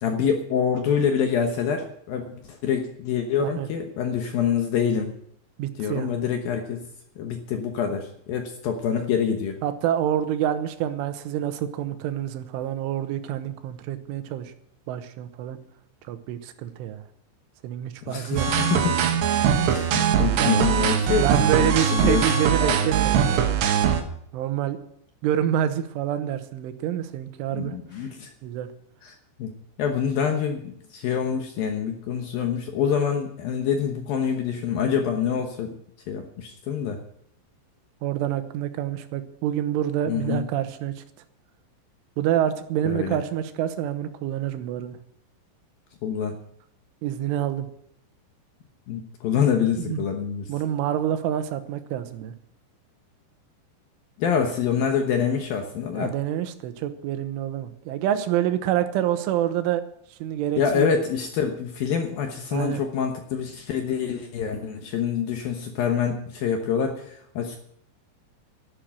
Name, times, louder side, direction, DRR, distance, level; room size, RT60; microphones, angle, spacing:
voice 1, 0.0-5.1 5.8-6.8 7.2-9.6 18.0-18.4 18.7-19.2 19.6-21.3 21.6-22.3 22.6-22.8 27.5-28.3 29.0-29.5 29.8-35.8 36.1-37.0 40.1-40.4 42.9-43.2 46.0-46.3 48.9-50.5 54.2-56.1 60.6-67.6, left 7 dB, 70° left, 4 dB, 2.4 m, -26 dB
voice 2, 5.6-6.2 9.6-14.5 14.9-15.6 16.1-17.0 17.6-18.8 20.1-20.5 21.2-23.5 24.3-24.8 25.2-27.8 28.4-28.7 38.0-41.0 42.2-45.0 47.0-47.7 49.9-50.0 50.5-52.3 56.0-59.8 60.1-60.9 62.5-62.8, right 11 dB, 85° right, 9 dB, 3.6 m, -27 dB
sound 1, 18.4-24.0, right 8 dB, 70° right, 3.3 m, -21 dB
12.0 x 11.5 x 7.6 m, 0.70 s
omnidirectional pair, 5.5 m